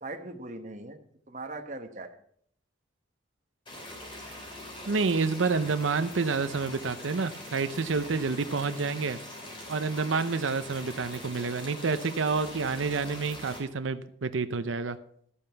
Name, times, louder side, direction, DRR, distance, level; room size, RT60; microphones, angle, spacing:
voice 1, 0.0-1.0 1.3-2.2 8.0-8.2, right 2 dB, 40° right, 6 dB, 1.1 m, -40 dB
sound 1, 3.7-13.6, left 1 dB, 25° left, 3.2 m, -43 dB
voice 2, 4.9-9.2 9.7-15.0, right 4 dB, 85° right, 10 dB, 0.7 m, -29 dB
12.5 x 8.6 x 5.7 m, 0.63 s
head